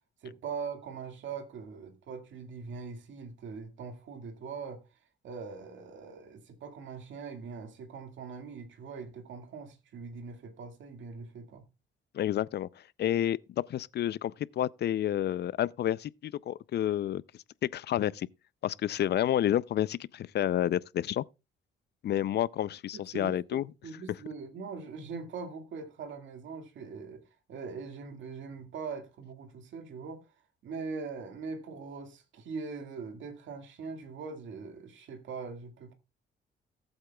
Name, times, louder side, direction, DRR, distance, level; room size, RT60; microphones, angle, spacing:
voice 1, 0.2-4.8 5.2-11.7 22.9-27.2 27.5-30.3 30.6-35.9, right 5 dB, 70° right, 2.0 m, -42 dB
voice 2, 12.1-12.7 13.0-13.4 13.7-17.2 17.7-18.3 18.6-21.2 22.0-23.7, left 11 dB, 55° left, 0.5 m, -29 dB
18.5 x 8.0 x 2.3 m
cardioid pair, 90°, 20 cm